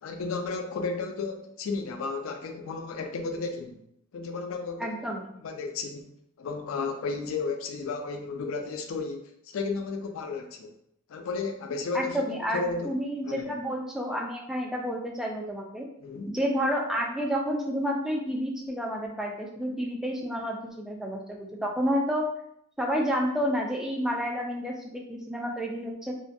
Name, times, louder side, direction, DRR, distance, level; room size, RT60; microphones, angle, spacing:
voice 1, 0.0-3.8 4.1-4.9 5.4-6.1 6.4-10.7 11.1-12.2 12.5-12.9 13.2-13.5 16.0-16.3, left 4 dB, 80° left, 5 dB, 0.4 m, -33 dB
voice 2, 4.8-5.4 11.9-15.9 16.3-22.3 22.8-26.2, equal, 5° right, -1 dB, 0.3 m, -30 dB
2.4 x 2.2 x 2.5 m, 0.73 s
head